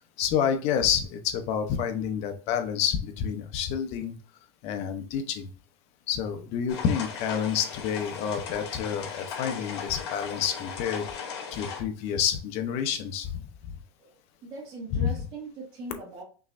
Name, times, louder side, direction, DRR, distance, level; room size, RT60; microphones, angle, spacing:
voice 1, 0.2-4.2 4.6-5.5 6.1-11.0 11.5-13.3 14.9-15.1, left 8 dB, 50° left, 7 dB, 0.9 m, -28 dB
sound 1, 6.7-11.8, left 6 dB, 70° left, 1.8 m, -37 dB
voice 2, 14.0-16.2, right 2 dB, 40° right, -4 dB, 1.6 m, -41 dB
5.8 x 3.2 x 2.6 m, 0.37 s
supercardioid pair, 135°, 14 cm